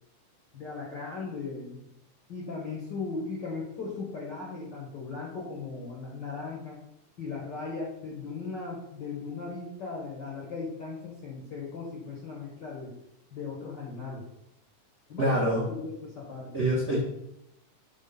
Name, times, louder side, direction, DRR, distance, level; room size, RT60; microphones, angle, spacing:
voice 1, 0.5-1.8 2.3-6.8 7.2-12.9 13.3-14.3 15.1-16.5, left 4 dB, 70° left, -3 dB, 1.0 m, -37 dB
voice 2, 15.2-15.6 16.5-17.0, right 1 dB, 80° right, -4 dB, 0.6 m, -25 dB
6.3 x 3.6 x 5.4 m, 0.83 s
omnidirectional pair, 3.6 m